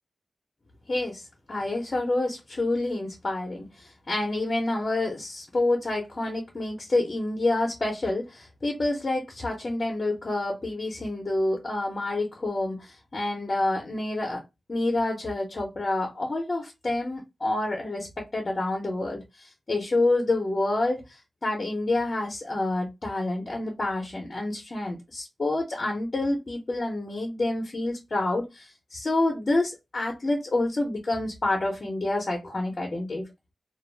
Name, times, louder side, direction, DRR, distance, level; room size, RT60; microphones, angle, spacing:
voice 1, 0.9-14.4 14.7-33.2, left 2 dB, 40° left, 0.6 m, -28 dB
2.2 x 2.0 x 3.2 m
wide cardioid pair, 125°, 0 cm